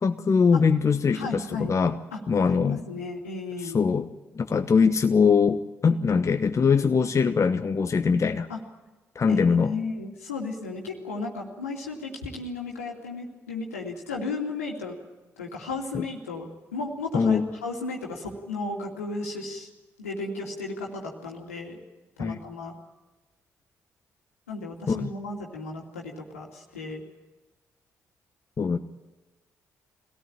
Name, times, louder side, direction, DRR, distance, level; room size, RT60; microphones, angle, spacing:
voice 1, 0.0-2.0 2.3-2.8 3.6-4.1 4.3-8.5 9.1-9.8 15.9-16.1 17.1-17.5 22.2-22.4 24.9-25.1 28.6-28.8, left 5 dB, 40° left, 7 dB, 1.1 m, -22 dB
voice 2, 1.1-1.8 2.1-2.2 2.5-3.8 8.5-8.6 9.3-15.0 15.4-19.7 20.0-21.8 22.2-22.7 24.5-27.0, left 3 dB, 90° left, -1 dB, 2.7 m, -34 dB
24.0 x 18.0 x 8.9 m, 1.1 s
figure-of-eight pair, 40°, 8 cm